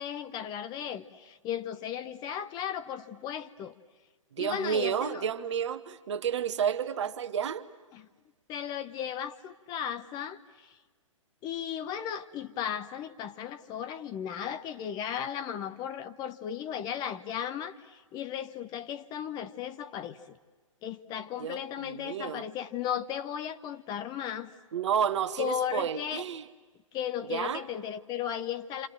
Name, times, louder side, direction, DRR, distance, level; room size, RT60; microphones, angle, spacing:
voice 1, 0.0-3.7 4.4-5.2 7.9-8.1 8.5-10.7 11.4-20.4 20.8-24.5 25.4-26.2 26.9-28.9, left 9 dB, 25° left, 0.9 m, -35 dB
voice 2, 4.3-7.7 21.4-22.5 24.7-26.4 27.3-27.6, right 8 dB, 60° right, 1.3 m, -31 dB
28.0 x 27.5 x 7.6 m
figure-of-eight pair, 125°, 17 cm